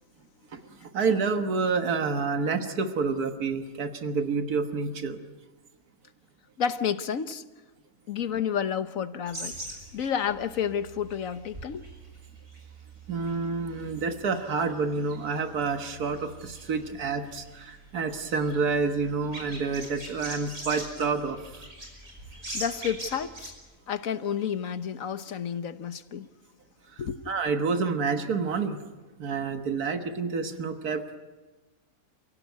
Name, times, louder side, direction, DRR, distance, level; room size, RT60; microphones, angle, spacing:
voice 1, 0.5-5.2 13.1-21.7 26.9-28.8 29.2-31.2, right 4 dB, 90° right, 1.9 m, -29 dB
voice 2, 6.6-7.4 8.1-9.5 9.9-11.8 22.5-23.5 23.9-26.3 27.0-27.2, left 8 dB, 65° left, 1.4 m, -30 dB
sound 1, 9.3-23.6, right 1 dB, 60° right, 6.1 m, -43 dB
28.5 x 16.5 x 9.4 m
omnidirectional pair, 1.6 m